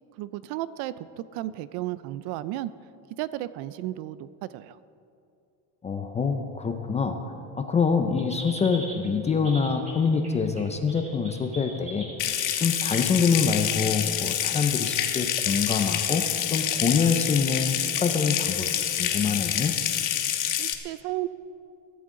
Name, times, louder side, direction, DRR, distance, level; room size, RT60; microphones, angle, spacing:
voice 1, 0.2-2.7 3.2-4.8 20.6-21.3, right 15 dB, 55° right, 16 dB, 0.5 m, -33 dB
voice 2, 5.8-7.2 7.5-12.1 12.6-18.7 19.0-19.7, left 5 dB, 15° left, 6 dB, 0.4 m, -25 dB
sound 1, 8.2-13.1 13.6-13.9 14.4-14.5, right 1 dB, 15° right, 2.3 m, -42 dB
Water tap faucet / Sink (filling or washing) / Trickle dribble, 12.2-20.7, left 10 dB, 40° left, 1.2 m, -27 dB
22.5 x 12.5 x 3.7 m, 2.5 s
cardioid pair, 155°, 49 cm